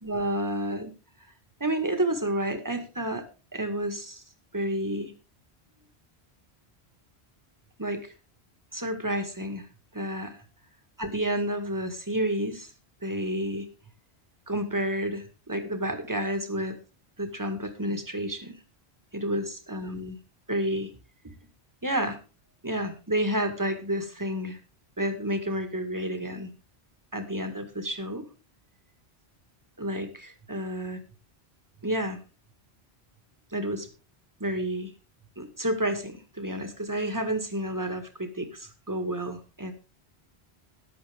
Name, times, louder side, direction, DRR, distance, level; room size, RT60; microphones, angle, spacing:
voice 1, 0.0-0.9 1.6-3.3 3.5-4.2 4.5-5.1 7.8-8.1 8.7-9.7 9.9-10.4 11.0-12.7 13.0-13.7 14.5-16.8 17.2-18.5 19.1-20.2 20.5-20.9 21.2-21.3 21.8-22.2 22.6-24.6 25.0-26.5 27.1-28.2 29.8-31.0 31.8-32.2 33.5-33.9 34.4-34.9 35.4-39.7, right 1 dB, 15° right, 7 dB, 2.0 m, -30 dB
14.5 x 11.0 x 3.6 m, 0.32 s
omnidirectional pair, 1.1 m